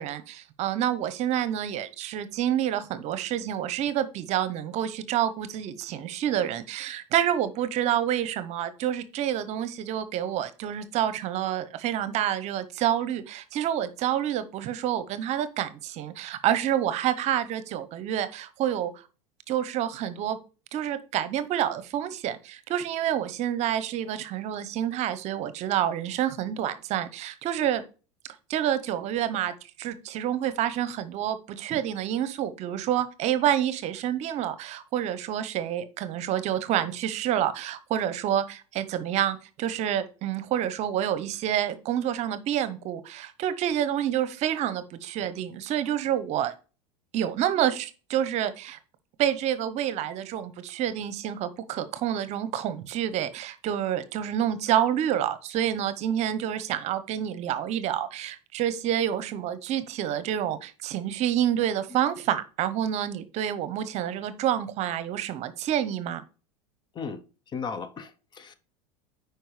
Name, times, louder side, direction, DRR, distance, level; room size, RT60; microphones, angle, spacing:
voice 1, 0.0-18.9 19.5-20.4 20.7-27.8 28.5-46.5 47.1-48.8 49.2-66.2, right 10 dB, 45° right, 0.9 m, -28 dB
voice 2, 66.9-68.5, left 5 dB, 30° left, 0.8 m, -36 dB
9.2 x 4.9 x 3.3 m
hypercardioid pair, 105°, 15 cm